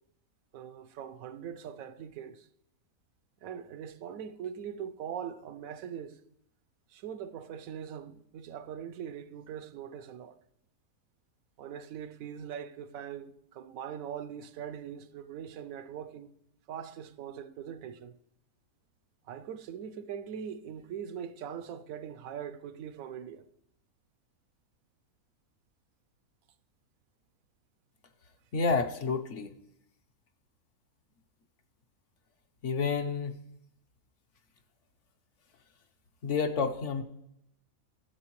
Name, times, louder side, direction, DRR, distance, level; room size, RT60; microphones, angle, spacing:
voice 1, 0.5-2.5 3.4-6.2 6.9-10.4 11.6-16.3 16.7-18.2 19.3-23.5, right 8 dB, 75° right, 1.0 m, -41 dB
voice 2, 28.5-29.5 32.6-33.3 36.2-37.0, left 5 dB, 60° left, 1.0 m, -29 dB
13.0 x 7.9 x 3.1 m
omnidirectional pair, 1.5 m